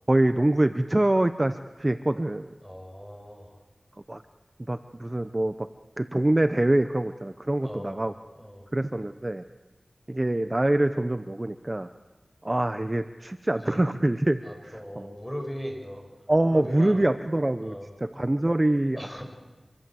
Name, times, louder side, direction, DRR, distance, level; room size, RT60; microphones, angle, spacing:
voice 1, 0.1-2.5 4.1-4.2 4.7-5.7 6.0-8.1 8.7-9.4 10.1-11.9 12.4-15.1 16.3-19.2, right 1 dB, 30° right, 9 dB, 0.8 m, -25 dB
voice 2, 2.6-3.5 7.6-8.0 8.4-8.7 13.5-13.8 14.4-16.1 16.5-17.0 17.6-17.9 18.9-19.2, equal, 5° left, 3 dB, 6.7 m, -39 dB
26.0 x 22.5 x 7.8 m, 1.2 s
wide cardioid pair, 60°, 0 cm